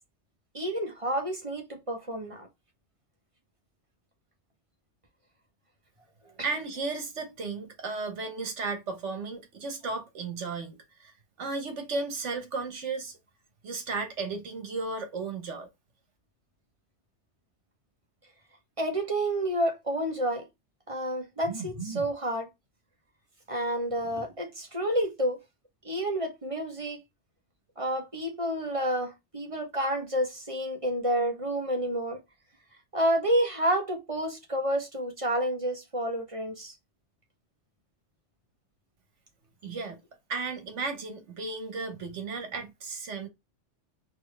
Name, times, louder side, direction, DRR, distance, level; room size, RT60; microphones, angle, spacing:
voice 1, 0.5-2.5 18.8-20.5 20.9-22.5 23.5-25.4 25.8-27.0 27.8-32.2 32.9-36.7, right 1 dB, 30° right, 1.2 m, -29 dB
voice 2, 6.2-11.1 11.4-13.2 13.6-15.7 39.6-40.0 40.3-43.3, right 4 dB, 75° right, 1.5 m, -34 dB
4.3 x 3.3 x 3.3 m
omnidirectional pair, 1.2 m